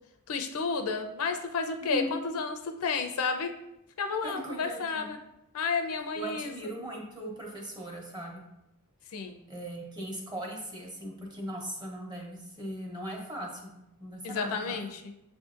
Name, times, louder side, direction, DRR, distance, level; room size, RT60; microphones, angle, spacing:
voice 1, 0.3-3.5 4.0-5.2 5.5-6.5 9.1-9.4 14.2-15.1, left 4 dB, 75° left, 6 dB, 0.5 m, -31 dB
voice 2, 4.2-5.1 6.1-8.4 9.5-13.7 14.0-14.8, right 1 dB, 20° right, -1 dB, 0.9 m, -39 dB
7.2 x 2.6 x 2.4 m, 0.86 s
head